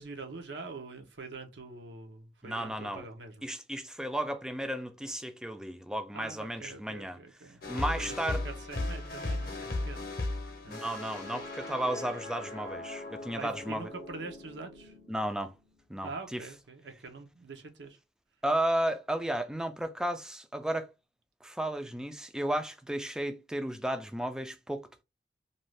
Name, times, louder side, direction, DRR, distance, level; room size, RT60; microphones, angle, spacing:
voice 1, 0.0-3.4 6.1-8.2 8.4-10.0 10.6-10.8 13.4-14.9 16.0-18.0, right 3 dB, 75° right, 0.7 m, -44 dB
voice 2, 2.4-3.0 3.4-7.2 7.7-8.4 10.7-13.9 15.1-15.5 15.9-16.4 18.4-20.9 21.4-25.0, right 1 dB, 5° right, 0.3 m, -33 dB
sound 1, 7.6-15.8, left 2 dB, 55° left, 0.7 m, -38 dB
2.6 x 2.3 x 3.2 m
head